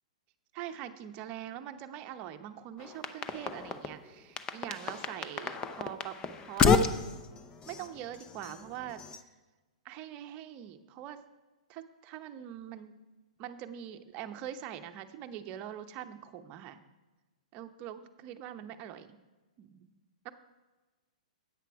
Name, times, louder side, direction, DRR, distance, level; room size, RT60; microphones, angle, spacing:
voice 1, 0.5-6.7 7.1-7.2 7.7-9.3 9.8-11.2 11.7-12.9 13.4-16.8 17.5-19.2 19.6-19.9 20.2-20.3, right 11 dB, 35° right, 8 dB, 0.8 m, -43 dB
sound 1, 2.8-4.0 4.4-9.2, left 5 dB, 20° left, 0.6 m, -31 dB
10.0 x 8.4 x 4.7 m, 1.2 s
hypercardioid pair, 130°, 4 cm